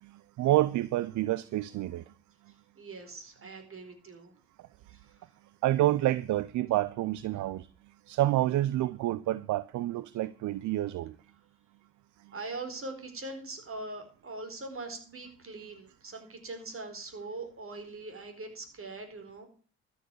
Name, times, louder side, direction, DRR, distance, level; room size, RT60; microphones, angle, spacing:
voice 1, 0.0-2.0 5.6-7.7 8.1-11.2 12.3-12.4, right 15 dB, 65° right, 0.7 m, -28 dB
voice 2, 2.8-4.3 4.9-5.1 12.3-19.5, right 2 dB, 40° right, 4.3 m, -42 dB
13.0 x 7.0 x 8.3 m
hypercardioid pair, 50°, 32 cm